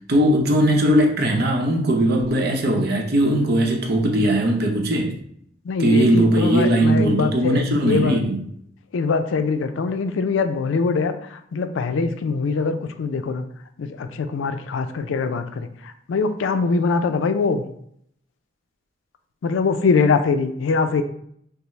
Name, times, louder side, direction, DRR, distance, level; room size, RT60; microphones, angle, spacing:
voice 1, 0.1-5.1 5.8-8.4, right 1 dB, 55° right, 0.7 m, -19 dB
voice 2, 5.7-8.2 8.9-11.2 11.5-13.4 13.8-15.7 16.1-17.6 19.4-21.0, left 4 dB, 85° left, 0.4 m, -22 dB
5.6 x 2.0 x 3.1 m
head